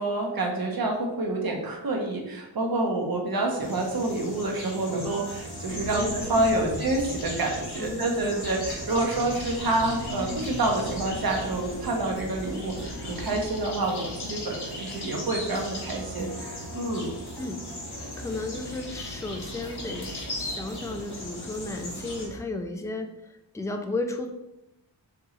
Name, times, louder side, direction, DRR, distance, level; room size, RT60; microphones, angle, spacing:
voice 1, 0.0-17.1, right 2 dB, 50° right, 0 dB, 1.0 m, -28 dB
sound 1, 3.6-22.3, left 1 dB, 60° left, 1.4 m, -38 dB
sound 2, 4.9-22.4, right 1 dB, 25° right, 1.0 m, -44 dB
sound 3, 5.7-13.5, left 1 dB, 75° left, 1.3 m, -40 dB
voice 2, 5.9-6.8 7.8-8.5 17.4-17.6 18.2-24.3, left 2 dB, 10° left, 5 dB, 0.3 m, -34 dB
4.7 x 3.0 x 3.7 m, 0.93 s
wide cardioid pair, 155°, 44 cm